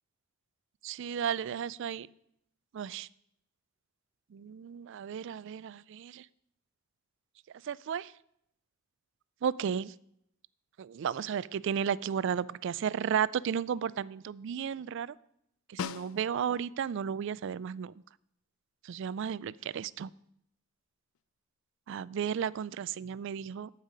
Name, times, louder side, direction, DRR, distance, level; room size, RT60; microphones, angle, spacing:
voice 1, 0.8-2.1 2.7-3.1 4.3-6.3 7.6-8.1 9.4-9.9 10.8-15.1 15.7-17.9 18.8-20.1 21.9-23.7, right 8 dB, 60° right, 21 dB, 0.3 m, -33 dB
Snare drum, 15.8-16.7 21.1-21.2, left 7 dB, 70° left, 0.4 m, -39 dB
14.5 x 5.7 x 5.1 m, 0.74 s
head